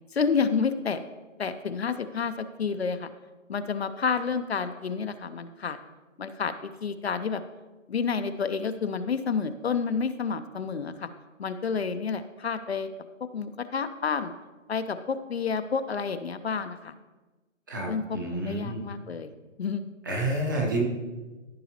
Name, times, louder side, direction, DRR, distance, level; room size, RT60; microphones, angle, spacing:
voice 1, 0.1-1.0 1.4-3.1 3.5-5.8 6.2-6.5 6.8-7.4 7.9-11.1 11.4-12.9 13.3-14.3 14.7-16.9 17.9-19.3 19.6-19.9, left 5 dB, 55° left, 10 dB, 0.6 m, -29 dB
voice 2, 17.7-18.8 20.1-20.8, right 1 dB, 15° right, -1 dB, 0.7 m, -29 dB
14.0 x 5.5 x 2.9 m, 1.2 s
figure-of-eight pair, 155°, 39 cm